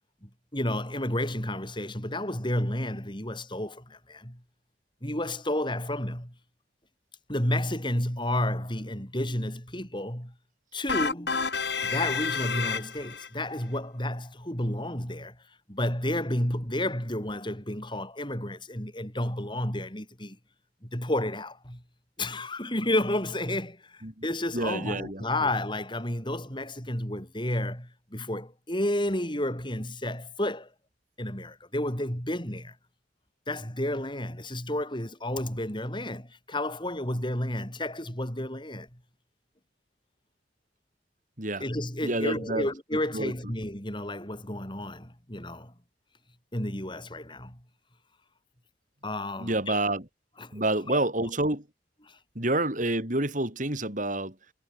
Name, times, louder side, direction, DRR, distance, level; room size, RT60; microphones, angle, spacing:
voice 1, 0.2-4.4 5.0-6.3 7.3-10.3 10.7-11.4 11.8-15.4 15.7-20.4 20.8-21.8 22.2-30.7 31.2-32.7 33.5-38.9 41.6-45.7 46.5-47.6 49.0-49.8 50.4-50.6 50.9-51.0 52.1-52.2, left 1 dB, 25° left, 8.0 m, -31 dB
sound 1, 10.9-13.3, left 5 dB, 65° left, 7.5 m, -29 dB
voice 2, 24.5-25.5 41.4-41.6 42.0-42.7 43.1-43.3 49.4-50.0 50.5-51.6 52.3-54.3, right 2 dB, 45° right, 4.6 m, -28 dB
head